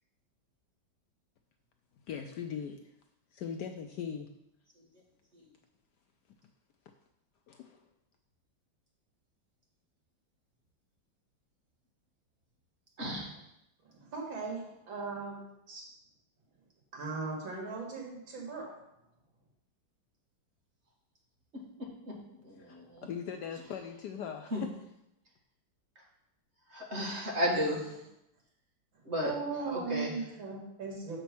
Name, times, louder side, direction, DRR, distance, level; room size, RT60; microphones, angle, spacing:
voice 1, 2.0-2.9 3.3-4.3 7.5-7.9 22.6-24.7, left 7 dB, 75° left, 5 dB, 1.0 m, -40 dB
voice 2, 13.0-13.3 14.6-14.7 22.0-23.1 24.5-24.7 26.0-26.1 26.7-28.0 29.0-29.3 29.7-30.3, equal, 35° right, -3 dB, 2.0 m, -34 dB
voice 3, 13.9-15.4 15.7-15.8 16.9-18.7 29.2-31.2, right 4 dB, 75° right, -1 dB, 2.7 m, -38 dB
6.8 x 5.3 x 6.0 m, 0.83 s
omnidirectional pair, 2.2 m